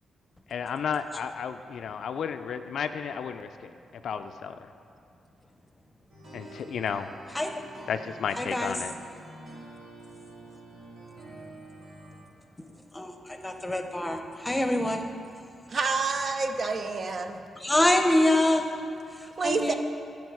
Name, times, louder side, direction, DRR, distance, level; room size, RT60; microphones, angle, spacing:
voice 1, 0.5-4.7 6.3-7.1 7.9-8.9, left 7 dB, 70° left, 9 dB, 0.3 m, -33 dB
sound 1, 6.1-12.2, right 1 dB, 70° right, 2.0 m, -47 dB
voice 2, 8.4-8.7 12.9-15.2 15.7-15.8 17.5-18.7 19.1-19.7, left 1 dB, 15° left, 5 dB, 0.7 m, -25 dB
voice 3, 15.7-17.4 19.4-19.7, right 4 dB, 50° right, 7 dB, 0.5 m, -28 dB
9.6 x 4.6 x 4.7 m, 2.5 s
cardioid pair, 65°, 0 cm